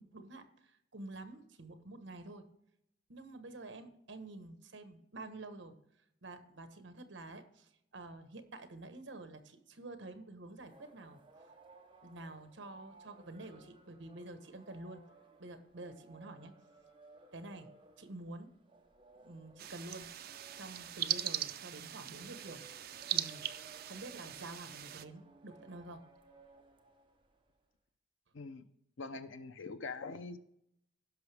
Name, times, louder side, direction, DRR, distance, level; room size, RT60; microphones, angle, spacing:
voice 1, 0.0-2.5 3.1-5.7 6.2-11.5 12.0-15.0 15.4-16.5 17.3-17.7 18.0-18.5 19.2-20.1 20.6-22.6 23.1-23.4 23.9-26.0, right 2 dB, 70° right, 8 dB, 1.2 m, -49 dB
sound 1, 10.6-27.6, right 2 dB, 25° right, 1.0 m, -61 dB
sound 2, 19.6-25.0, right 11 dB, 55° right, 0.5 m, -40 dB
voice 2, 29.0-30.4, left 4 dB, 80° left, 11 dB, 0.7 m, -43 dB
16.5 x 6.0 x 3.4 m, 0.78 s
head